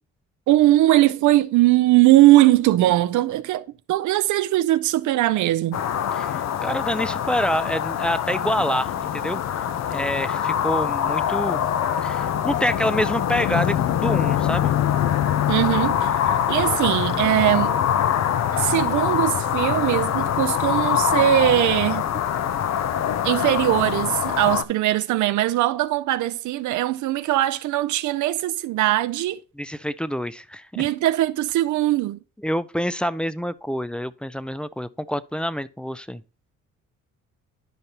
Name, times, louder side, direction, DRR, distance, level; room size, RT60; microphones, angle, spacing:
voice 1, 0.5-5.8 15.5-16.1 16.5-17.7 18.5-22.1 23.2-29.4 30.8-32.2, right 15 dB, 75° right, 0.5 m, -20 dB
sound 1, 5.7-24.6, left 9 dB, 60° left, 0.6 m, -24 dB
voice 2, 6.1-9.4 9.9-11.6 12.0-14.7 29.6-30.8 32.4-36.2, equal, 5° left, 0.3 m, -27 dB
11.0 x 5.2 x 2.8 m
cardioid pair, 90°, 30 cm